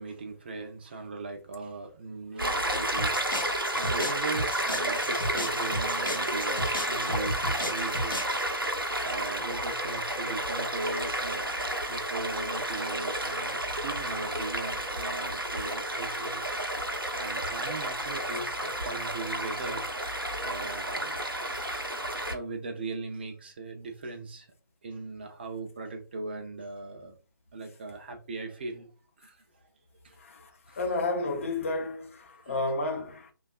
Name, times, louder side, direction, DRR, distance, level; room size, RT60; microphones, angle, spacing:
voice 1, 0.0-8.7 9.0-11.5 11.9-16.6 17.2-20.1 20.4-21.2 22.3-24.5 24.8-27.1 27.5-28.9 29.2-29.4 30.0-30.2 30.7-30.8 32.5-32.6, right 3 dB, 30° right, 0.4 m, -39 dB
Stream, 2.4-22.3, right 1 dB, 85° right, 0.7 m, -31 dB
sound 1, 3.0-8.5, equal, 70° left, 0.8 m, -35 dB
voice 2, 30.2-33.3, left 2 dB, 40° left, 0.5 m, -31 dB
3.3 x 2.3 x 2.3 m
figure-of-eight pair, 145°, 11 cm